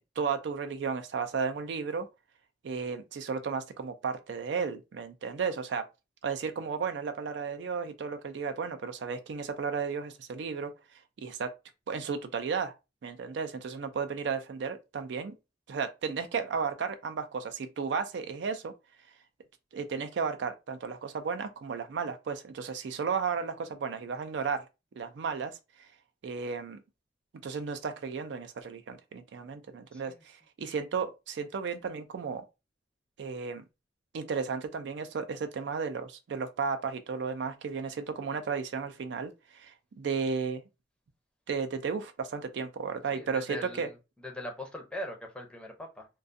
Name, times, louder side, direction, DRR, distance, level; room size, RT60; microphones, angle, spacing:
voice 1, 0.2-2.1 2.6-5.9 6.2-10.7 11.2-11.5 11.9-12.7 13.0-15.3 15.7-18.7 19.7-24.7 25.0-25.9 26.2-26.8 27.4-32.4 33.2-33.6 34.1-40.6 41.5-43.9, right 5 dB, 70° right, 0.4 m, -34 dB
voice 2, 29.9-30.2 43.1-44.0 44.2-46.1, left 1 dB, 5° left, 0.5 m, -41 dB
2.4 x 2.3 x 2.5 m
head